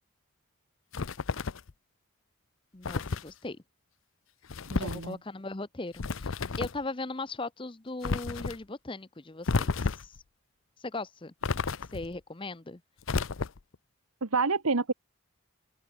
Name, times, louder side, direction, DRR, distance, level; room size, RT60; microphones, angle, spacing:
sound 1, 0.9-1.7 2.8-3.3 4.5-5.1 6.0-6.8 8.0-8.6 9.5-10.2 11.4-12.1 13.0-13.8, left 4 dB, 70° left, 0.7 m, -31 dB
voice 1, 2.7-3.6 4.7-10.1 10.8-11.3 11.9-12.8, left 2 dB, 25° left, 0.7 m, -38 dB
voice 2, 4.7-5.2 14.2-14.9, right 4 dB, 90° right, 1.4 m, -28 dB
open air
head